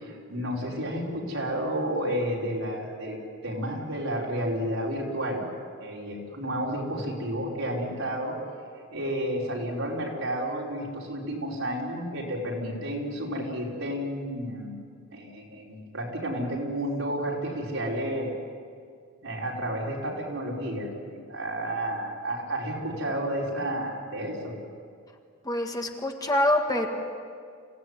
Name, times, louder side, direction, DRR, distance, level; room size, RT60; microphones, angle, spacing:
voice 1, 0.0-5.4 5.8-8.4 8.9-14.8 15.1-18.3 19.2-20.9 21.3-24.5, equal, 75° right, -3 dB, 5.1 m, -31 dB
voice 2, 25.4-26.9, left 1 dB, 20° left, 3 dB, 1.7 m, -25 dB
26.0 x 17.0 x 9.7 m, 2.2 s
head